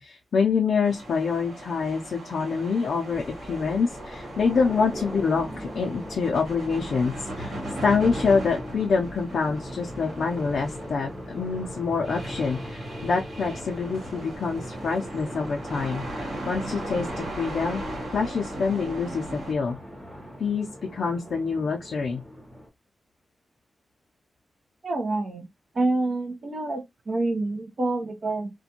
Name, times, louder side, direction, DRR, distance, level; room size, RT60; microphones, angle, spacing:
voice 1, 0.0-7.5 7.8-17.8 18.1-19.8 20.4-20.7 20.9-22.2, left 5 dB, 60° left, 0.4 m, -26 dB
sound 1, 0.8-19.5, right 1 dB, 75° right, 1.3 m, -39 dB
sound 2, 3.1-22.7, equal, 5° right, 1.0 m, -39 dB
voice 2, 24.8-25.5 25.7-28.5, right 2 dB, 40° right, 0.7 m, -27 dB
2.5 x 2.2 x 2.8 m
wide cardioid pair, 155°, 0 cm